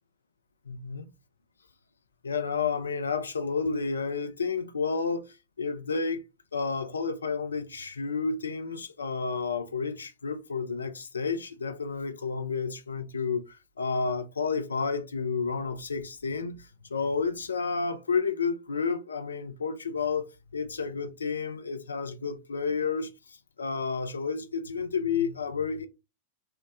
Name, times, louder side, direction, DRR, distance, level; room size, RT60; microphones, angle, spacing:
voice 1, 0.7-1.1 2.2-5.3 5.6-6.2 6.5-16.6 16.9-20.2 20.5-23.1 23.6-25.9, left 5 dB, 75° left, 0.4 m, -30 dB
3.7 x 2.0 x 3.3 m
figure-of-eight pair, 90°, 0 cm